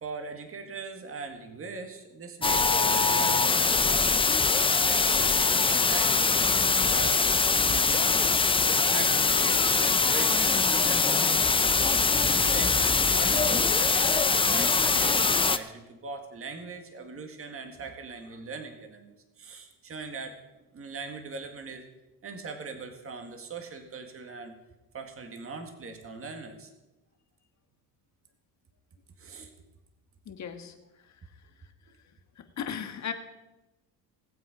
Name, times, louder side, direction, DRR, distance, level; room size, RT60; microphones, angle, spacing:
voice 1, 0.0-6.2 6.8-11.6 12.0-20.4 20.7-21.8 22.2-24.5 24.9-26.7 29.2-29.5, right 4 dB, 35° right, 5 dB, 1.9 m, -41 dB
sound 1, 2.4-15.6, left 4 dB, 15° left, 0.5 m, -23 dB
voice 2, 30.2-30.7 32.4-33.1, left 8 dB, 45° left, 7 dB, 1.6 m, -36 dB
19.5 x 8.0 x 5.1 m, 1.0 s
cardioid pair, 110°, 38 cm